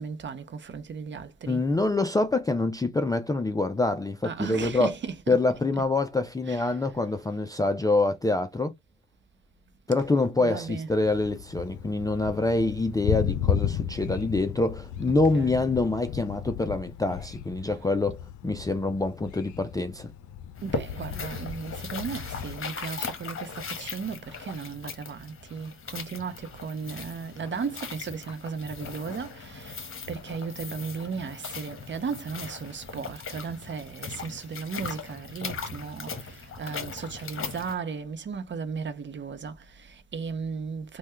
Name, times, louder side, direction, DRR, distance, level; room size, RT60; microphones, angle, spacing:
voice 1, 0.0-1.6 4.2-5.4 5.7-5.8 6.5-6.8 10.4-10.9 15.1-15.6 20.6-41.0, right 5 dB, 40° right, 0.7 m, -36 dB
voice 2, 1.5-5.0 5.3-8.7 9.9-20.1, left 2 dB, 10° left, 0.4 m, -26 dB
Thunder, 11.0-22.7, left 9 dB, 75° left, 0.5 m, -34 dB
sound 1, 20.6-37.8, left 4 dB, 45° left, 1.1 m, -38 dB
3.3 x 2.3 x 3.1 m
cardioid pair, 90°, 30 cm